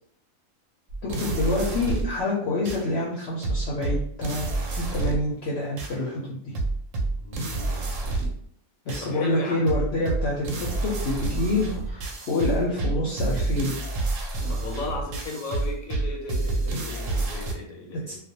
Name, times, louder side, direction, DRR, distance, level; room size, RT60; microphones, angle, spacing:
sound 1, 0.9-2.2 2.7-2.8 3.4-5.3 5.8-5.9 6.6-8.5 8.9-9.1 9.7-17.5, right 2 dB, 70° right, 0.9 m, -29 dB
voice 1, 1.0-4.5 4.7-6.4 8.9-13.7 18.1-18.2, left 2 dB, 60° left, -5 dB, 0.7 m, -27 dB
voice 2, 7.2-7.9 9.0-9.8 14.5-18.2, left 3 dB, 85° left, 0 dB, 1.1 m, -36 dB
2.4 x 2.1 x 2.7 m, 0.67 s
omnidirectional pair, 1.5 m